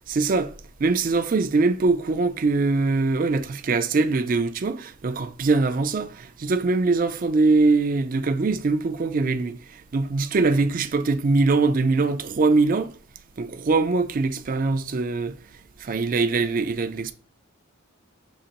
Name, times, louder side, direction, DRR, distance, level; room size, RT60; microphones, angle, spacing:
voice 1, 0.1-0.5 0.8-12.9 13.4-15.4 15.8-17.1, right 3 dB, 40° right, 0.4 m, -22 dB
6.4 x 2.9 x 2.9 m
head